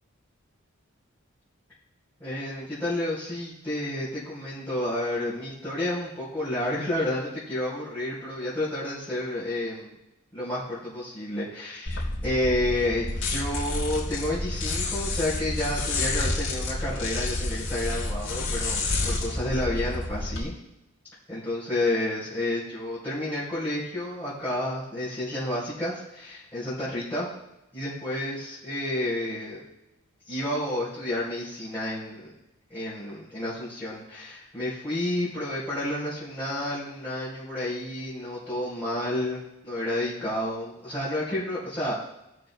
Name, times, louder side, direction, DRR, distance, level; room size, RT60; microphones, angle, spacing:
voice 1, 2.2-9.9 10.3-20.5 21.3-27.3 27.7-29.6 30.2-32.3 32.7-42.0, left 1 dB, 10° left, -13 dB, 3.8 m, -30 dB
sound 1, 11.9-20.4, left 2 dB, 70° left, 3.1 m, -29 dB
18.5 x 6.6 x 2.2 m, 0.91 s
head